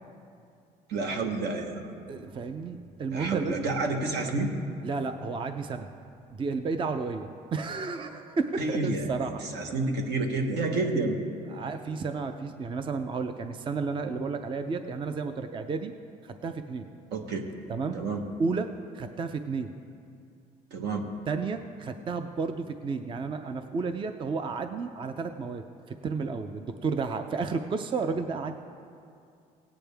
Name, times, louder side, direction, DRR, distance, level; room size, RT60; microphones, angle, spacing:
voice 1, 0.9-1.9 3.1-4.5 8.6-11.2 17.1-17.5 17.9-18.2 20.7-21.1, right 3 dB, 75° right, 3 dB, 1.3 m, -29 dB
voice 2, 2.1-3.6 4.8-5.9 6.3-9.4 11.5-15.9 16.2-16.9 17.7-18.0 18.4-18.7 18.9-19.7 21.3-28.6, right 4 dB, 30° right, 8 dB, 0.5 m, -32 dB
17.5 x 9.0 x 3.4 m, 2.4 s
cardioid pair, 110°, 17 cm